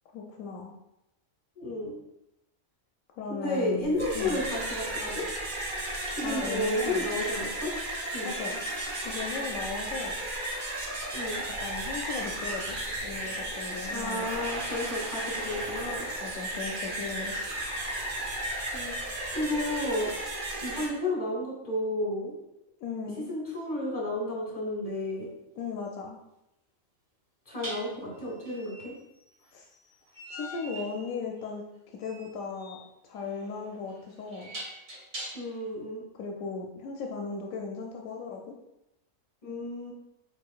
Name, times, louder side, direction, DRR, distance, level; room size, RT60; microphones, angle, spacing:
voice 1, 0.1-0.7 3.2-4.5 6.2-7.1 8.2-8.6 9.0-10.2 11.6-12.8 13.0-14.3 16.2-17.5 22.8-23.3 25.6-26.2 29.5-29.7 30.3-31.6 32.0-34.5 36.1-38.5, left 5 dB, 80° left, 0 dB, 1.0 m, -37 dB
voice 2, 1.6-2.0 3.3-5.2 6.1-7.7 8.1-8.3 11.1-11.4 13.9-16.1 18.7-20.1 20.6-22.4 23.3-25.3 27.5-28.9 35.3-36.0 39.4-39.9, left 1 dB, 35° left, -4 dB, 1.9 m, -32 dB
sound 1, 3.8-20.9, right 1 dB, 45° right, 0.9 m, -34 dB
sound 2, 25.2-25.3 27.6-35.7, right 1 dB, 75° right, 1.8 m, -44 dB
4.7 x 4.4 x 2.3 m, 0.87 s
omnidirectional pair, 1.4 m